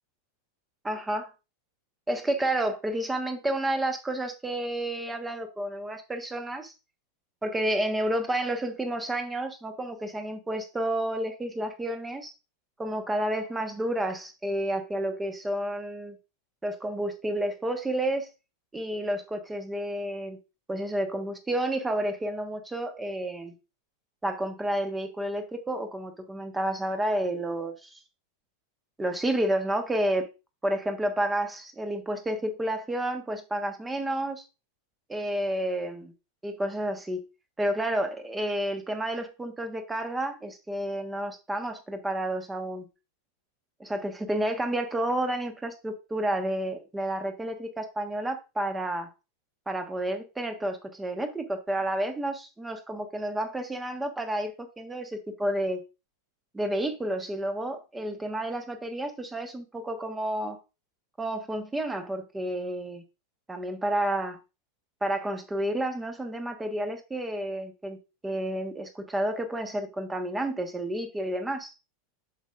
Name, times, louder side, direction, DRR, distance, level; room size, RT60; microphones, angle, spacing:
voice 1, 0.8-1.3 2.1-6.7 7.4-12.3 12.8-16.2 16.6-18.3 18.7-20.4 20.7-23.6 24.2-28.0 29.0-30.3 30.6-34.4 35.1-36.1 36.4-37.2 37.6-42.9 43.8-49.1 49.7-55.8 56.5-60.6 61.2-63.0 63.5-64.4 65.0-68.0 68.2-71.7, right 1 dB, 10° right, 1.2 m, -30 dB
8.0 x 6.3 x 2.4 m
figure-of-eight pair, 90°, 0 cm